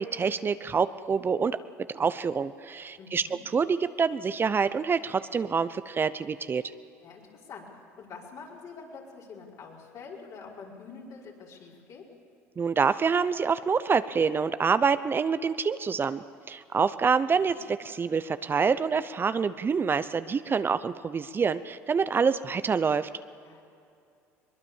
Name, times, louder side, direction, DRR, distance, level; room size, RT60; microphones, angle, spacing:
voice 1, 0.0-1.6 1.9-3.3 3.5-6.6 12.6-16.2 16.5-23.1, right 5 dB, 30° right, 13 dB, 0.7 m, -26 dB
voice 2, 3.0-3.4 7.0-7.2 7.5-7.6 8.0-12.0 17.5-17.7 23.4-23.6, left 5 dB, 60° left, -3 dB, 5.4 m, -45 dB
22.0 x 21.5 x 7.2 m, 2.5 s
supercardioid pair, 80°, 7 cm